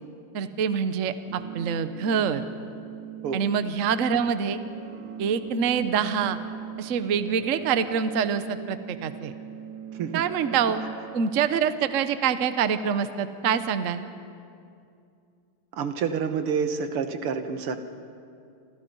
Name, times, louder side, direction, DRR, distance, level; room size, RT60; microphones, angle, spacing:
voice 1, 0.3-2.4 3.3-4.6 5.2-6.4 6.8-9.3 10.1-10.8 11.1-14.1, right 7 dB, 50° right, 11 dB, 1.0 m, -25 dB
sound 1, 1.3-11.3, right 9 dB, 65° right, 1.5 m, -39 dB
voice 2, 15.7-17.8, right 6 dB, 80° right, 8 dB, 2.2 m, -28 dB
29.0 x 26.5 x 5.5 m, 2.5 s
omnidirectional pair, 2.4 m